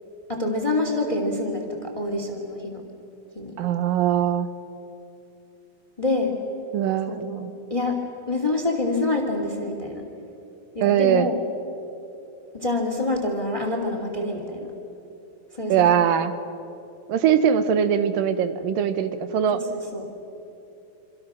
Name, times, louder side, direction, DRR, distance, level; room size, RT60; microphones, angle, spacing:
voice 1, 0.3-2.8 3.3-3.6 6.0-6.4 7.1-7.4 7.7-8.0 8.3-10.0 10.7-11.4 12.5-14.7 15.5-15.9 19.7-20.0, left 2 dB, 10° left, 3 dB, 2.0 m, -26 dB
voice 2, 3.6-4.5 6.7-7.5 10.8-11.3 15.7-16.3 17.1-19.6, right 9 dB, 70° right, 10 dB, 2.7 m, -21 dB
27.5 x 26.0 x 6.3 m, 2.9 s
omnidirectional pair, 4.3 m